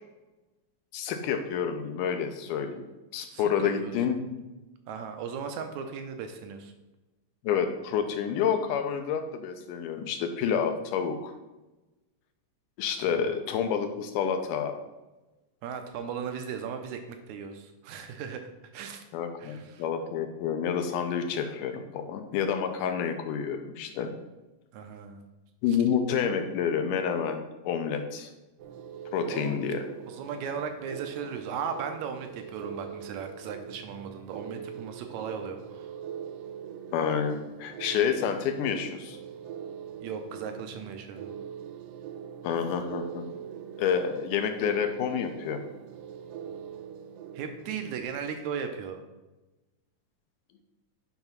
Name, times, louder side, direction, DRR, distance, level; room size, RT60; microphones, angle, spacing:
voice 1, 0.9-2.8 3.1-4.2 7.4-11.3 12.8-14.8 19.1-24.1 25.6-28.3 29.1-29.9 36.9-39.2 42.4-43.3 43.8-45.6, left 7 dB, 80° left, 6 dB, 2.3 m, -29 dB
voice 2, 3.3-3.9 4.9-6.7 13.1-13.4 15.6-19.0 19.4-19.8 24.7-25.2 29.3-29.6 30.1-35.9 40.0-41.3 47.4-49.0, right 6 dB, 75° right, 6 dB, 1.9 m, -37 dB
sound 1, 28.6-48.0, right 8 dB, 90° right, 2.3 m, -42 dB
8.8 x 3.5 x 5.7 m, 1.1 s
omnidirectional pair, 3.8 m